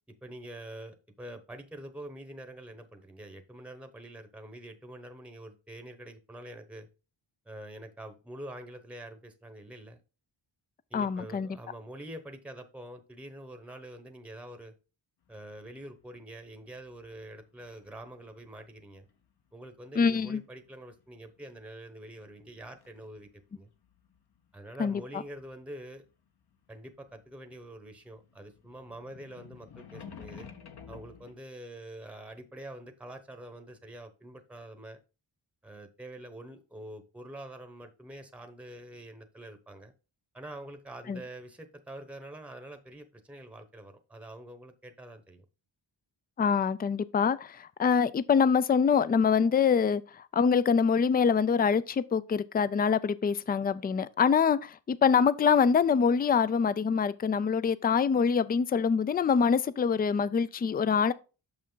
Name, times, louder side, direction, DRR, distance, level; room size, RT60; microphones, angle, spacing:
voice 1, 0.2-6.9 7.5-10.0 10.9-14.7 15.3-19.1 19.5-23.7 24.5-26.0 26.7-30.5 30.9-35.0 35.6-39.9 40.3-45.4, right 1 dB, 5° right, 0.9 m, -46 dB
voice 2, 10.9-11.5 20.0-20.4 24.8-25.0 41.1-41.2 46.4-61.1, left 6 dB, 25° left, 0.3 m, -25 dB
sound 1, 15.3-18.1 18.4-19.6 20.4-21.9 22.2-27.3 27.6-31.3, left 6 dB, 55° left, 1.0 m, -51 dB
6.4 x 5.6 x 3.8 m
wide cardioid pair, 95°, 46 cm